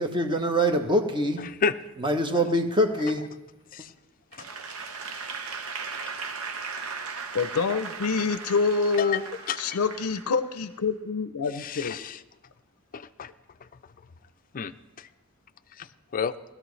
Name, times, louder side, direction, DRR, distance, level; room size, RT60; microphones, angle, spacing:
voice 1, 0.0-1.5 2.0-3.3, equal, 20° right, 6 dB, 1.0 m, -24 dB
voice 2, 1.4-1.7 3.7-3.9 4.3-4.5 5.9-6.1 9.0-9.2 9.5-9.8 11.5-12.2 12.9-13.3 13.6-13.7 14.5-15.1 15.7-16.3, left 6 dB, 40° left, 11 dB, 0.5 m, -32 dB
Applause / Crowd, 4.3-10.7, right 5 dB, 75° right, 0.9 m, -37 dB
voice 3, 7.3-9.2 9.6-12.0, left 4 dB, 85° left, 11 dB, 0.5 m, -26 dB
19.5 x 13.0 x 3.2 m, 1.1 s
head